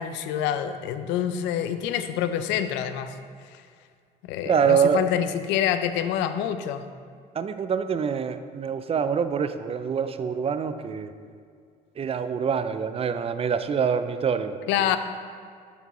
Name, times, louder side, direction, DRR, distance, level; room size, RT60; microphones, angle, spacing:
voice 1, 0.0-3.2 3.5-3.6 4.3-6.9 14.7-15.0, left 10 dB, 85° left, 10 dB, 0.4 m, -26 dB
voice 2, 4.5-5.0 7.3-11.1 12.0-14.9, right 7 dB, 35° right, 11 dB, 0.4 m, -25 dB
7.1 x 5.9 x 3.1 m, 2.2 s
cardioid pair, 85°, 18 cm